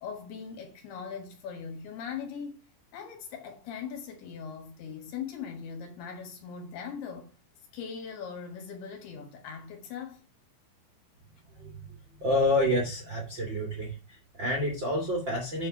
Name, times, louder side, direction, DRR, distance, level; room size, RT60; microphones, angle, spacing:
voice 1, 0.0-2.6 2.9-7.3 7.7-10.2, left 6 dB, 65° left, 3.1 m, -40 dB
voice 2, 12.2-15.7, left 1 dB, 45° right, 1.5 m, -28 dB
8.0 x 4.5 x 5.9 m
omnidirectional pair, 5.4 m